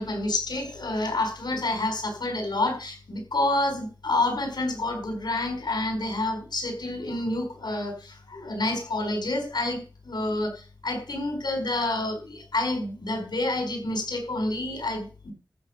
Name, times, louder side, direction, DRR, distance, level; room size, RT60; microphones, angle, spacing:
voice 1, 0.0-15.3, left 2 dB, 85° left, 5 dB, 4.8 m, -28 dB
13.5 x 6.6 x 6.7 m, 0.35 s
wide cardioid pair, 50°, 7 cm